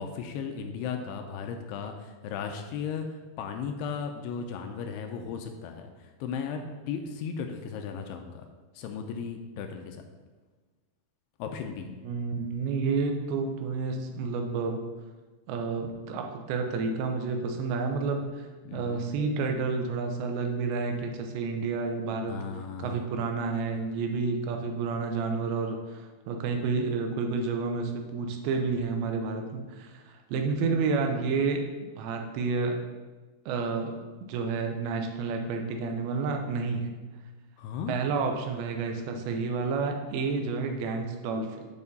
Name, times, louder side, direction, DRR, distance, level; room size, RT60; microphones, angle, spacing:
voice 1, 0.0-8.4 8.8-10.0 11.4-11.9 18.6-19.1 22.3-23.0 37.6-38.0, left 6 dB, 80° left, 5 dB, 2.5 m, -36 dB
voice 2, 12.0-14.8 15.5-18.4 18.7-22.4 22.8-31.6 32.0-32.8 33.5-33.9 34.3-36.9 37.9-41.7, right 4 dB, 90° right, 4 dB, 3.1 m, -30 dB
9.1 x 5.2 x 4.1 m, 1.3 s
omnidirectional pair, 4.9 m